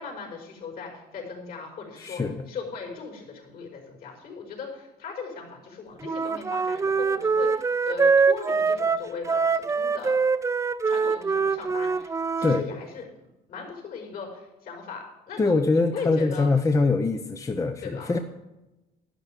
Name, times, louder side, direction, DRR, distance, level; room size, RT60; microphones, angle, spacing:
voice 1, 0.0-10.2 10.9-13.0 13.5-16.5 17.8-18.1, left 5 dB, 60° left, 0 dB, 5.3 m, -38 dB
voice 2, 2.0-2.4 12.4-12.6 15.4-18.2, left 3 dB, 20° left, 7 dB, 0.7 m, -23 dB
Wind instrument woodwind instrument, 6.0-12.6, right 5 dB, 15° right, 0.4 m, -24 dB
11.5 x 10.5 x 5.2 m, 0.98 s
cardioid pair, 110°, 17 cm